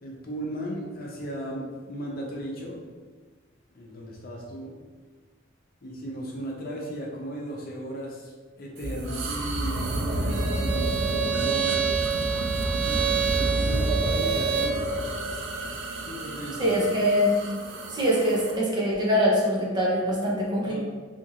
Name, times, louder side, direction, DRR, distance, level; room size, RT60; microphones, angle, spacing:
voice 1, 0.0-2.8 3.7-4.7 5.8-8.3 8.6-11.9 12.8-14.8 15.9-16.7 20.6-20.8, equal, 50° left, -2 dB, 0.6 m, -36 dB
sound 1, 8.8-18.6, right 2 dB, 75° right, 0.4 m, -30 dB
Bowed string instrument, 10.3-14.8, right 8 dB, 55° right, 0.8 m, -28 dB
voice 2, 16.6-17.3 17.9-20.8, equal, 20° right, -5 dB, 0.6 m, -23 dB
2.8 x 2.5 x 2.8 m, 1.4 s
head